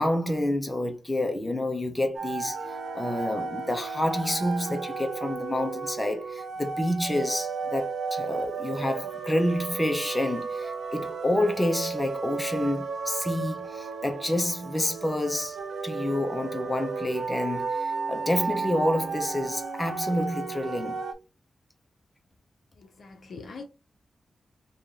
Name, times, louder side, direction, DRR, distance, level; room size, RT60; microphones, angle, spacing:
voice 1, 0.0-15.6 15.8-21.0, left 1 dB, 10° left, 0.8 m, -28 dB
sound 1, 2.1-21.1, right 4 dB, 85° right, 0.6 m, -34 dB
voice 2, 22.8-23.6, left 4 dB, 60° left, 0.7 m, -43 dB
3.2 x 2.7 x 4.0 m
wide cardioid pair, 110°, 0 cm